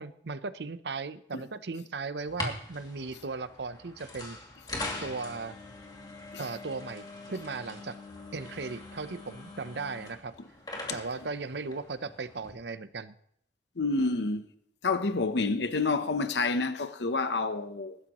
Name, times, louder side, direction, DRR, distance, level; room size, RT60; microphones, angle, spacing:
voice 1, 0.0-4.4 5.0-5.6 6.4-8.0 8.3-10.3 10.9-13.1, right 4 dB, 65° right, 0.7 m, -37 dB
sound 1, 2.2-12.5, left 2 dB, 25° left, 2.5 m, -42 dB
voice 2, 13.8-14.5 14.8-18.0, left 3 dB, 70° left, 0.8 m, -28 dB
21.5 x 12.5 x 3.0 m
head